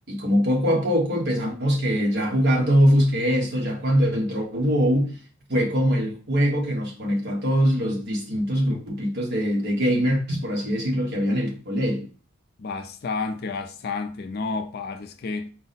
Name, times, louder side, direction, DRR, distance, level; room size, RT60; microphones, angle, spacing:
voice 1, 0.1-5.2 5.5-12.1, equal, 50° right, 1.2 m, -22 dB
voice 2, 12.6-15.5, left 4 dB, 45° left, 0.4 m, -30 dB
4.6 x 2.1 x 4.0 m
head